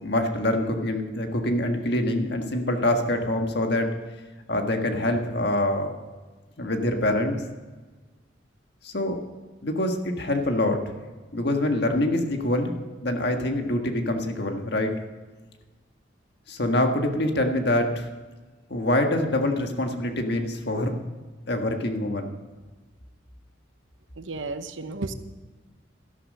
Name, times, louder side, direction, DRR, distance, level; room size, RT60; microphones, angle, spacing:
voice 1, 0.0-3.9 4.5-5.9 6.6-7.4 8.8-9.2 9.6-10.8 11.3-12.7 13.0-14.9 16.5-18.1 18.7-21.0 21.5-22.3, left 1 dB, 60° left, 4 dB, 1.7 m, -25 dB
voice 2, 24.2-25.1, right 3 dB, 80° right, 10 dB, 1.0 m, -33 dB
13.0 x 11.5 x 5.4 m, 1.3 s
head